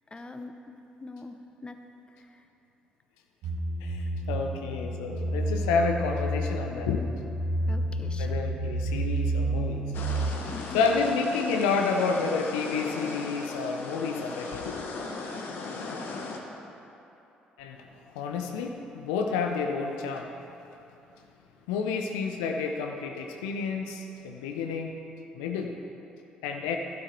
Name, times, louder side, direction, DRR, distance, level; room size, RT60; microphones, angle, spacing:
voice 1, 0.1-0.6 1.0-1.8 2.2-2.5 7.7-8.4 10.5-10.8, left 3 dB, 20° left, 6 dB, 0.8 m, -43 dB
sound 1, 3.4-10.3, right 1 dB, 65° right, 1.4 m, -30 dB
voice 2, 3.8-7.1 8.2-9.8 10.7-14.9 17.6-17.9 18.1-20.3 21.7-25.0 25.3-25.8 26.4-26.8, left 5 dB, 75° left, 3 dB, 0.6 m, -30 dB
sound 2, 9.9-16.4, left 3 dB, 60° left, 1.2 m, -37 dB
12.0 x 7.9 x 4.5 m, 2.9 s
hypercardioid pair, 50°, 4 cm